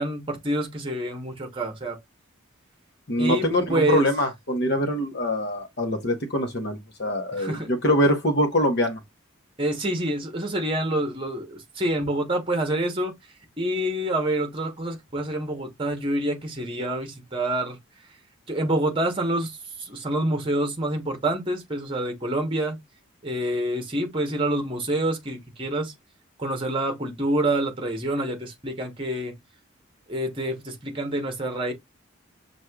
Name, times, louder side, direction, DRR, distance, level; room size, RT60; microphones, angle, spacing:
voice 1, 0.0-2.0 3.2-4.1 7.4-7.7 9.6-13.1 13.6-17.8 18.5-22.8 23.2-25.9 26.4-29.3 30.1-31.7, right 1 dB, 25° right, 1.0 m, -27 dB
voice 2, 3.1-9.0, left 1 dB, 55° left, 1.1 m, -24 dB
6.2 x 2.6 x 2.3 m
head